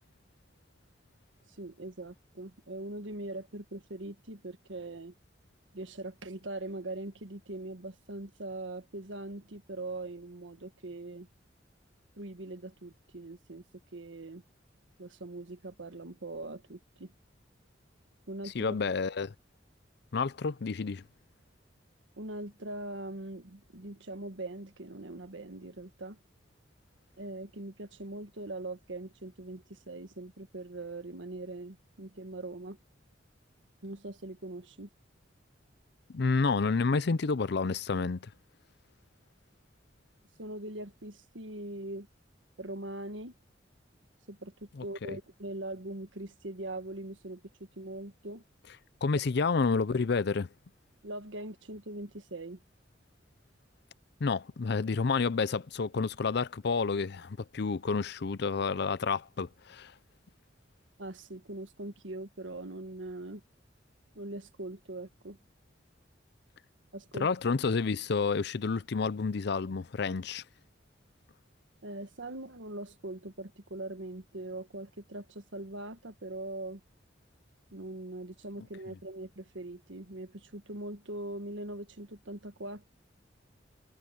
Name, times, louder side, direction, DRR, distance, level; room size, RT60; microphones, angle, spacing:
voice 1, 1.6-5.1 5.7-11.3 12.2-13.6 13.9-14.4 15.0-17.1 18.3-18.8 22.2-26.2 27.2-32.8 33.8-34.9 40.4-42.1 42.6-43.3 44.3-44.5 44.8-47.4 47.8-48.4 51.0-52.6 61.0-63.4 64.1-65.4 66.9-67.3 71.8-76.8 77.7-82.9, right 2 dB, 85° right, 1.5 m, -41 dB
voice 2, 18.5-19.3 20.1-21.0 36.1-38.3 44.8-45.2 49.0-50.5 54.2-59.9 67.1-70.4, left 4 dB, 60° left, 0.6 m, -29 dB
head